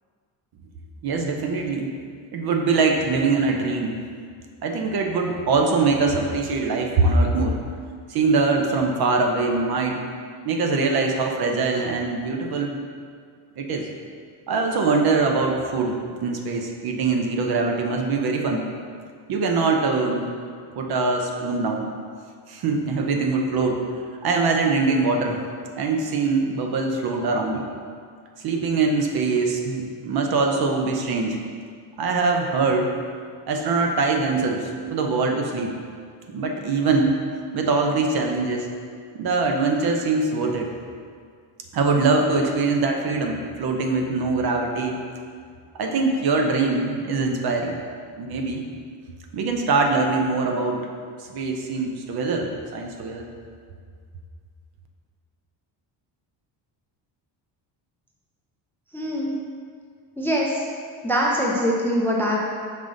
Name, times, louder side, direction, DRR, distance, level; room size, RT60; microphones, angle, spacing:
voice 1, 1.0-1.9 2.3-4.0 4.6-7.6 8.1-10.0 10.4-12.8 13.6-13.9 14.5-18.6 19.3-20.2 20.8-21.9 22.5-23.8 24.2-25.4 25.8-27.7 28.4-31.4 32.0-32.9 33.5-35.7 36.3-37.1 37.5-38.7 39.1-40.7 41.7-45.0 45.8-47.8 48.2-48.6 49.3-50.8 51.3-53.3, right 3 dB, 55° right, 2 dB, 0.8 m, -23 dB
voice 2, 58.9-59.3 60.2-60.6 61.0-62.4, equal, 5° left, -3 dB, 0.5 m, -23 dB
5.3 x 5.3 x 3.8 m, 2.1 s
cardioid pair, 150°, 45 cm